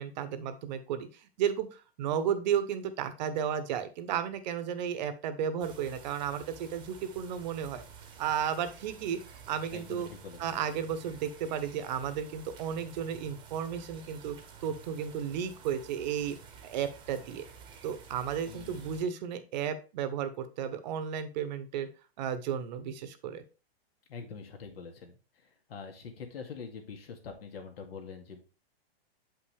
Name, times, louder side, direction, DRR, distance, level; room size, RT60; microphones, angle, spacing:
voice 1, 0.0-7.8 8.2-9.2 9.5-10.1 10.4-14.4 14.6-16.4 16.6-17.5 17.8-21.9 22.2-23.4, right 8 dB, 45° right, 11 dB, 1.0 m, -33 dB
sound 1, 5.6-19.1, right 6 dB, 15° right, 1.1 m, -51 dB
voice 2, 9.7-10.6 18.5-18.9 24.1-28.4, left 5 dB, 70° left, 4 dB, 2.3 m, -45 dB
7.8 x 5.7 x 3.4 m, 0.34 s
hypercardioid pair, 150°, 31 cm